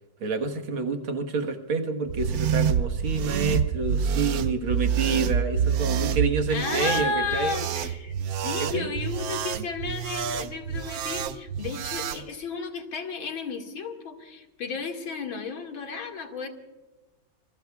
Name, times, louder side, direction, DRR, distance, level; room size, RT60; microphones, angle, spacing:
voice 1, 0.2-7.6 8.7-8.9, right 4 dB, 80° right, 5 dB, 2.3 m, -28 dB
sound 1, 2.1-12.2, right 7 dB, 65° right, 1.0 m, -27 dB
voice 2, 6.5-8.1 8.4-16.5, left 4 dB, 70° left, 3 dB, 2.9 m, -33 dB
27.0 x 22.0 x 2.4 m, 1.1 s
omnidirectional pair, 2.2 m